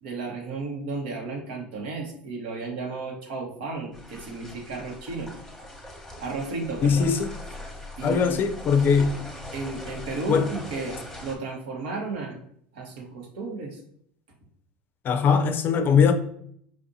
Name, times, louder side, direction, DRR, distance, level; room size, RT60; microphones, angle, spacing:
voice 1, 0.0-5.7 6.2-7.1 8.0-8.4 9.5-12.4 12.7-13.8, right 3 dB, 75° right, 1.2 m, -34 dB
sound 1, 3.9-11.4, left 1 dB, 5° left, 1.0 m, -41 dB
voice 2, 6.8-7.3 8.0-9.2 10.3-10.4 15.0-16.1, left 6 dB, 40° left, 0.5 m, -21 dB
5.1 x 2.6 x 2.7 m
hypercardioid pair, 90°, 5 cm